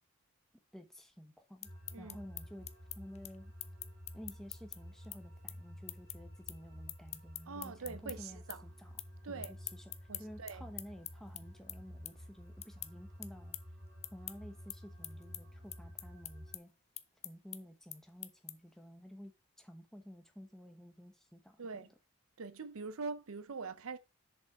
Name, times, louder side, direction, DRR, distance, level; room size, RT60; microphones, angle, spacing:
voice 1, 0.7-1.7 2.0-2.7 3.0-3.5 4.1-8.9 9.3-9.9 10.2-13.6 14.1-16.7 17.2-19.3 19.6-21.9, equal, ahead, 1.0 m, -52 dB
sound 1, 1.4-8.2 8.5-9.1 9.4-18.8, left 13 dB, 30° left, 0.5 m, -46 dB
sound 2, 1.6-16.6, equal, 45° right, 2.9 m, -52 dB
voice 2, 7.5-8.6 9.2-9.6 10.1-10.6 21.6-21.9 22.4-24.0, right 4 dB, 75° right, 0.6 m, -43 dB
6.8 x 5.4 x 4.7 m
head